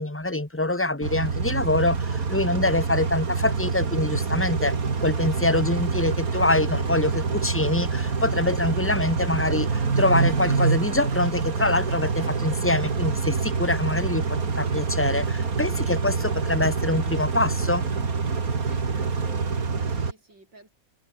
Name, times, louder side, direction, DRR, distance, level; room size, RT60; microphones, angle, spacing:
voice 1, 0.0-4.7 5.0-17.9, left 2 dB, 5° left, 2.0 m, -25 dB
Car / Idling / Accelerating revving vroom, 1.0-20.1, right 5 dB, 50° right, 2.7 m, -26 dB
voice 2, 18.6-20.7, right 2 dB, 85° right, 8.9 m, -49 dB
omnidirectional pair, 1.9 m